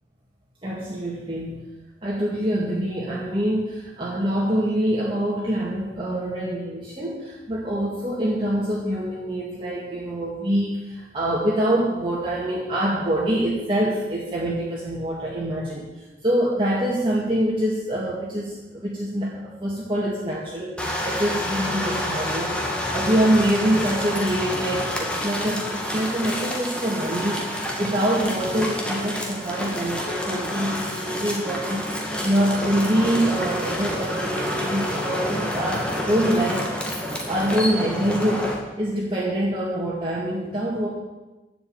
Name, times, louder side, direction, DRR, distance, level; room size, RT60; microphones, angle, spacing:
voice 1, 0.6-1.6 2.0-15.9 16.2-31.9 32.2-36.7 37.3-38.5 38.8-40.9, right 1 dB, 30° right, -6 dB, 2.2 m, -25 dB
sound 1, 20.8-38.5, left 1 dB, 5° left, 1.9 m, -28 dB
11.0 x 7.4 x 8.9 m, 1.1 s
head